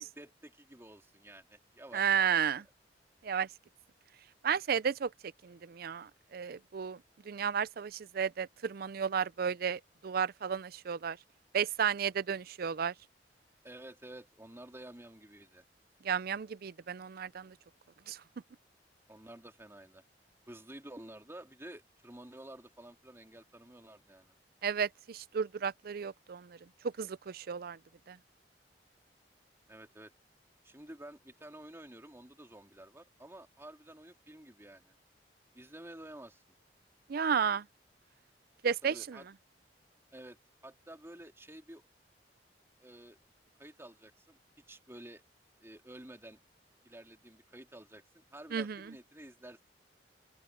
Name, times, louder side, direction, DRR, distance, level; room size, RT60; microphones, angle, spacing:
voice 1, 0.0-2.4 13.6-15.6 19.1-20.0 20.5-24.3 29.7-30.1 30.6-34.9 35.5-36.4 38.8-39.3 40.1-40.4 40.6-41.8 42.8-43.2 43.6-44.4 44.7-45.2 45.6-46.4 46.8-49.6, right 1 dB, 15° right, 3.0 m, -51 dB
voice 2, 1.9-2.6 3.2-3.5 4.4-5.1 5.4-7.0 7.3-11.2 11.5-12.9 16.0-17.5 18.1-18.2 24.6-26.6 27.0-27.8 28.1-28.2 37.1-37.7 38.6-39.2 48.5-48.8, right 7 dB, 55° right, 0.4 m, -33 dB
open air
head